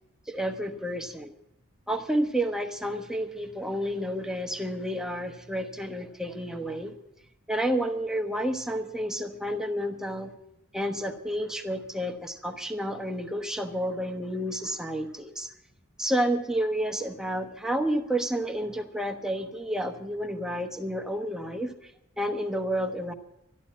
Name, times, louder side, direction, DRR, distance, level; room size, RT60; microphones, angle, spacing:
voice 1, 0.3-1.3 1.9-6.9 7.5-10.3 10.7-15.5 16.0-21.7 22.2-23.1, equal, 5° right, 4 dB, 1.1 m, -30 dB
13.0 x 11.5 x 7.4 m, 0.81 s
head